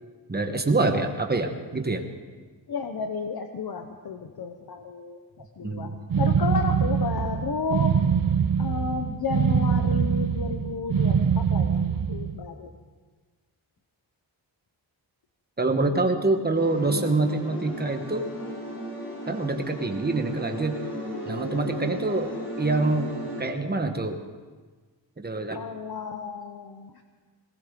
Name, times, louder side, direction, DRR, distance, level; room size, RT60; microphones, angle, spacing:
voice 1, 0.3-2.0 5.6-6.0 15.6-18.3 19.3-20.8 21.3-24.2 25.2-25.6, right 2 dB, 20° right, 5 dB, 1.2 m, -26 dB
voice 2, 2.7-5.2 5.6-5.9 6.2-7.9 8.6-12.7 25.5-27.0, left 5 dB, 60° left, 5 dB, 0.9 m, -32 dB
sound 1, 6.1-12.4, right 7 dB, 50° right, 0.7 m, -24 dB
sound 2, 16.5-23.4, equal, 25° left, 6.6 m, -35 dB
20.0 x 18.5 x 3.8 m, 1.4 s
wide cardioid pair, 160°, 43 cm